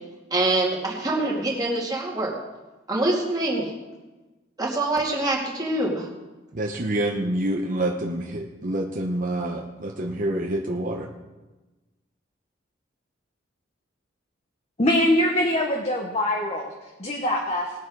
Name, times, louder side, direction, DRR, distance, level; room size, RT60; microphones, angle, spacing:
voice 1, 0.3-2.3 2.9-3.7 4.6-6.1, right 2 dB, 20° right, -3 dB, 2.2 m, -25 dB
voice 2, 6.5-11.1, right 1 dB, 45° right, 0 dB, 1.0 m, -27 dB
voice 3, 14.8-16.7 17.0-17.7, left 1 dB, 35° left, 1 dB, 1.2 m, -23 dB
19.5 x 7.2 x 4.8 m, 1.1 s
head